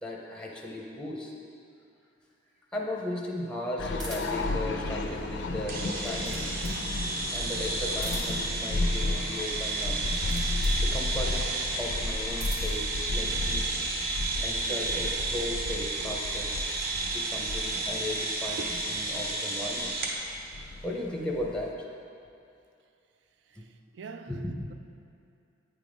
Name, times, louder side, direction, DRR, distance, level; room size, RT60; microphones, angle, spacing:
voice 1, 0.0-1.3 2.7-6.6 7.3-10.0 10.8-11.3 11.8-13.8 14.4-16.5 17.0-20.1 20.7-21.8 23.6-23.7 24.3-24.7, left 1 dB, 5° left, -2 dB, 0.6 m, -36 dB
sound 1, 3.8-21.7, left 2 dB, 70° left, 0.4 m, -33 dB
sound 2, 4.0-4.5 5.8-6.8 7.9-8.5 10.0-10.8 12.1-12.8, right 2 dB, 25° right, 1.0 m, -43 dB
sound 3, 5.7-20.2, right 2 dB, 50° right, 0.8 m, -32 dB
voice 2, 23.5-24.4, right 4 dB, 70° right, 8 dB, 0.3 m, -44 dB
8.3 x 3.5 x 5.0 m, 2.5 s
head